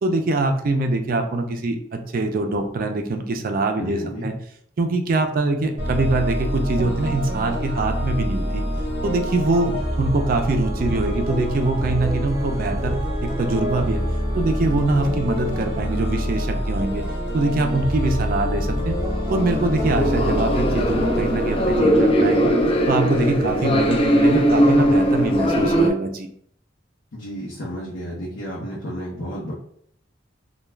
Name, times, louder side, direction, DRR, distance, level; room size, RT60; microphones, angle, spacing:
voice 1, 0.0-4.3 4.8-8.6 9.0-14.0 14.3-17.0 17.3-18.9 19.3-22.5 22.9-26.3, right 2 dB, 45° right, 5 dB, 0.4 m, -23 dB
voice 2, 3.8-4.3 27.1-29.5, equal, 80° left, -5 dB, 0.7 m, -32 dB
sound 1, 5.8-21.8, equal, 25° right, 0.8 m, -26 dB
sound 2, 19.1-25.9, equal, 30° left, 0.3 m, -19 dB
2.2 x 2.2 x 3.1 m, 0.66 s
head